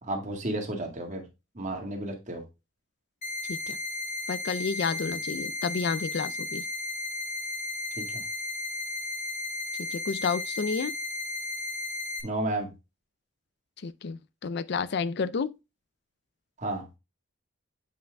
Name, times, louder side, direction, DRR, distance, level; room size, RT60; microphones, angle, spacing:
voice 1, 0.0-1.2 1.6-2.4 8.0-8.2 12.2-12.7 16.6-16.9, right 1 dB, 35° right, 1.8 m, -32 dB
sound 1, 3.2-12.2, left 2 dB, 35° left, 1.1 m, -34 dB
voice 2, 4.3-6.7 9.8-11.0 13.8-15.5, left 5 dB, 55° left, 0.4 m, -30 dB
7.7 x 5.7 x 2.2 m
head